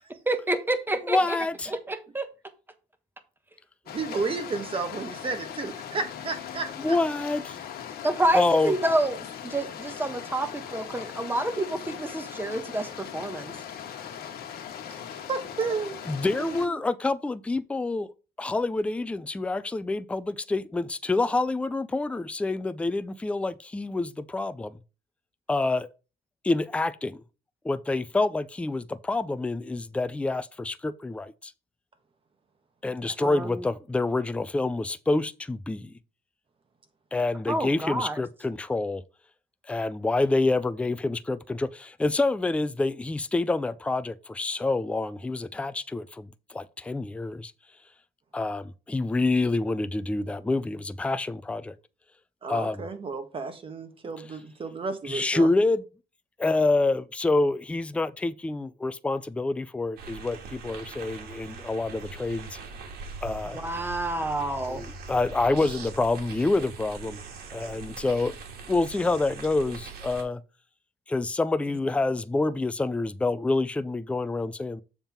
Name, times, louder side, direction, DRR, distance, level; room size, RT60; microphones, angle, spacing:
voice 1, 0.3-1.4 1.9-2.3 8.0-9.2 9.4-13.5 33.2-33.6 37.5-38.2 63.5-64.8, right 1 dB, 10° right, 1.3 m, -28 dB
voice 2, 1.1-1.7 6.8-7.6 8.3-8.7 16.1-18.1 18.4-24.7 25.5-25.9 26.4-27.2 27.6-31.5 32.8-35.9 37.1-39.0 39.7-47.5 48.3-51.7 52.5-52.9 55.1-55.8 56.4-62.6 63.2-63.6 64.7-67.2 67.5-68.4 68.7-70.4 71.1-74.8, left 2 dB, 5° left, 0.4 m, -27 dB
sound 1, 3.9-16.7, left 8 dB, 65° left, 1.4 m, -39 dB
voice 3, 3.9-7.0 14.9-16.1 16.4-16.8 52.4-55.5, right 4 dB, 30° right, 1.5 m, -32 dB
sound 2, 60.0-70.2, right 4 dB, 65° right, 2.2 m, -42 dB
7.1 x 3.6 x 5.9 m
cardioid pair, 110°, 17 cm